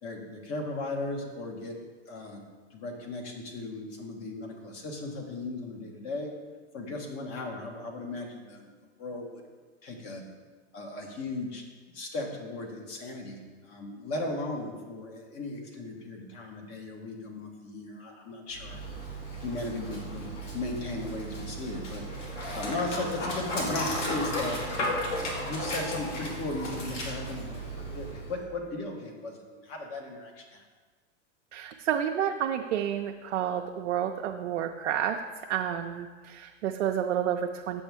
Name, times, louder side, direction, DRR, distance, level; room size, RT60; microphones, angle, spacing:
voice 1, 0.0-1.8 2.1-6.3 6.7-9.4 9.8-10.2 10.7-11.6 11.9-18.8 19.4-22.1 22.5-30.6, left 2 dB, 40° left, 2 dB, 1.5 m, -37 dB
Dog, 18.5-28.4, equal, 80° left, 2.0 m, -35 dB
voice 2, 31.5-37.8, right 9 dB, 90° right, 3 dB, 0.6 m, -30 dB
7.5 x 6.2 x 3.5 m, 1.4 s
hypercardioid pair, 120°, 36 cm